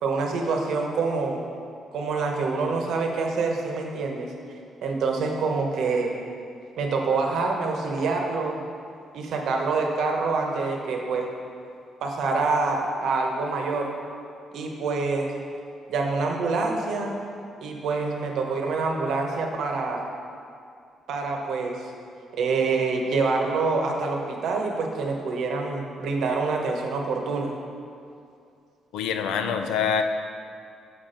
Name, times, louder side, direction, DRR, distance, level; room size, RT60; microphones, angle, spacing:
voice 1, 0.0-1.4 1.9-4.3 4.8-6.1 6.8-8.6 9.1-11.3 12.0-13.9 14.5-15.3 15.9-17.2 17.6-20.0 21.1-21.9 22.3-27.5, right 4 dB, 75° right, 1 dB, 0.9 m, -26 dB
voice 2, 28.9-30.0, left 7 dB, 90° left, 7 dB, 0.4 m, -25 dB
7.2 x 4.3 x 5.1 m, 2.4 s
cardioid pair, 90°, 0 cm